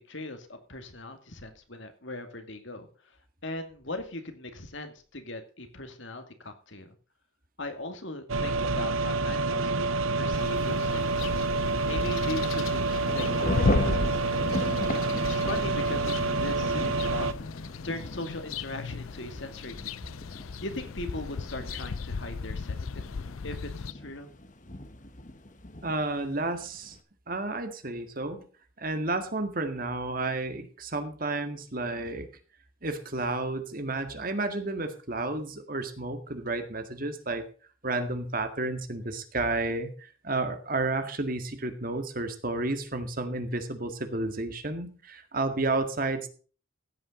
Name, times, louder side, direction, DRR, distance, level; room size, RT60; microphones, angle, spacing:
voice 1, 0.0-2.9 3.4-6.9 7.6-9.9 10.1-11.3 11.9-12.8 13.1-14.6 15.2-17.3 17.8-20.0 20.4-22.8 23.4-24.3, left 2 dB, 65° left, 6 dB, 2.5 m, -39 dB
household basement water pump, 8.3-17.3, right 3 dB, 80° right, 0.8 m, -28 dB
sound 1, 10.3-23.9, left 5 dB, 85° left, 0.5 m, -36 dB
Thunder / Rain, 12.5-27.0, left 1 dB, 35° left, 1.3 m, -37 dB
voice 2, 25.8-27.0 27.3-28.4 28.8-32.3 32.8-37.4 37.8-46.3, right 2 dB, 45° right, 8 dB, 1.8 m, -31 dB
15.5 x 9.1 x 3.9 m, 0.39 s
head